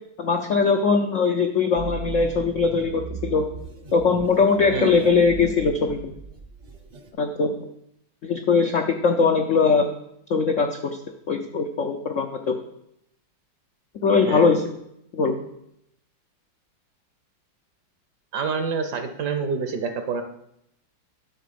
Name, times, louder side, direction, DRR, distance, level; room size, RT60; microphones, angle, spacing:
voice 1, 0.2-3.4 3.9-6.1 7.2-7.7 8.2-9.9 10.3-11.0 11.3-12.6 14.0-14.6 15.1-15.4, left 4 dB, 75° left, 4 dB, 0.7 m, -21 dB
sound 1, 1.7-7.1, right 4 dB, 40° right, 0.6 m, -38 dB
voice 2, 4.7-5.0 14.3-14.5 18.3-20.2, right 5 dB, 60° right, 7 dB, 1.3 m, -27 dB
11.0 x 3.9 x 6.9 m, 0.77 s
omnidirectional pair, 2.2 m